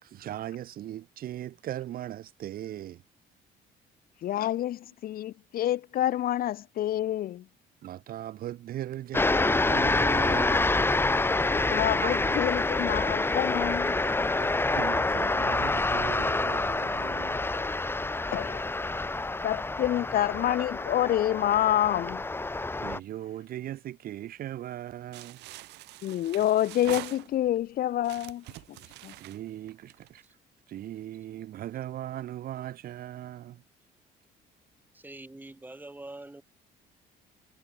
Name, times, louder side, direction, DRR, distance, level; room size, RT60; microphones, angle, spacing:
voice 1, 0.0-3.0 7.8-11.0 12.0-12.2 14.4-17.5 22.8-25.4 29.1-30.2 30.7-33.6, right 12 dB, 60° right, 1.2 m, -39 dB
voice 2, 4.2-7.4 11.5-13.9 18.3-18.6 19.4-22.2 26.0-28.4 29.0-29.1, left 12 dB, 60° left, 1.0 m, -27 dB
sound 1, 9.1-23.0, left 2 dB, 15° left, 1.8 m, -27 dB
sound 2, 25.1-27.6 28.0-30.3, right 18 dB, 85° right, 3.5 m, -44 dB
voice 3, 34.9-36.4, right 2 dB, 10° right, 6.2 m, -44 dB
cardioid pair, 110°, 17 cm